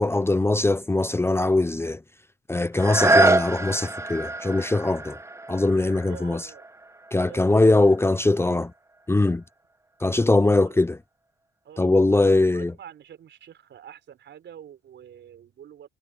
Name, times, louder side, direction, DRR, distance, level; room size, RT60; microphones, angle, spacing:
voice 1, 0.0-2.0 2.5-5.2 5.5-6.4 7.1-8.7 9.1-9.4 10.0-11.0 11.8-12.7, left 2 dB, 10° left, 0.7 m, -21 dB
sound 1, 2.7-8.4 9.0-9.1, right 2 dB, 15° right, 1.1 m, -26 dB
voice 2, 6.1-6.7 7.2-8.4 10.4-10.9 11.6-15.9, right 9 dB, 65° right, 5.2 m, -46 dB
cardioid pair, 90°, 20 cm